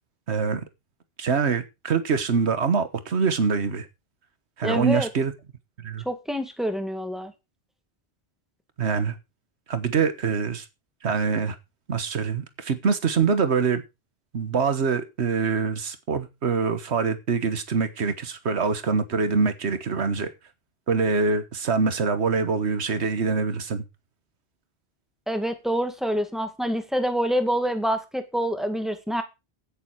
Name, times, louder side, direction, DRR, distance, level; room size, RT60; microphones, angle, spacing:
voice 1, 0.3-0.6 1.2-3.9 4.6-5.3 5.8-6.0 8.8-9.1 9.7-10.7 11.0-11.6 11.9-13.8 14.3-20.3 20.9-23.8, right 5 dB, 90° right, 1.5 m, -24 dB
voice 2, 4.6-5.1 6.1-7.3 25.3-29.2, equal, ahead, 1.8 m, -26 dB
16.0 x 6.9 x 4.7 m
omnidirectional pair, 1.1 m